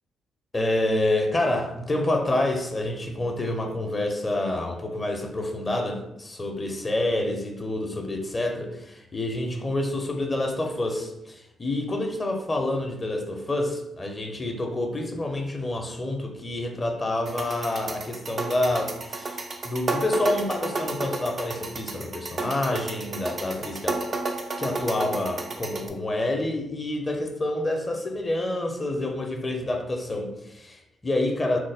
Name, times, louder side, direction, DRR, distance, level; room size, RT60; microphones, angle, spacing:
voice 1, 0.5-24.0 24.6-31.6, left 1 dB, 30° left, 3 dB, 0.6 m, -28 dB
sound 1, 17.3-25.9, right 3 dB, 45° right, 0.4 m, -32 dB
3.1 x 2.1 x 3.3 m, 0.85 s
hypercardioid pair, 45°, 0 cm